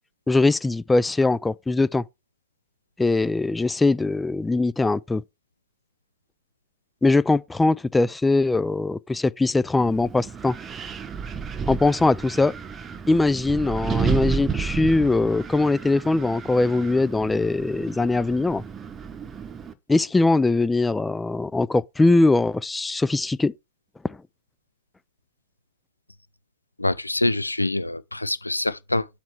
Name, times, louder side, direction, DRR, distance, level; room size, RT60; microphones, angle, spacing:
voice 1, 0.3-2.0 3.0-5.2 7.0-10.6 11.7-12.5 13.1-18.6 19.9-23.5 24.0-24.2, left 3 dB, 10° left, 0.4 m, -21 dB
Wind, 9.8-19.7, right 6 dB, 20° right, 0.9 m, -32 dB
voice 2, 26.8-29.1, left 2 dB, 85° left, 0.4 m, -25 dB
7.2 x 3.3 x 6.1 m
figure-of-eight pair, 90°, 0 cm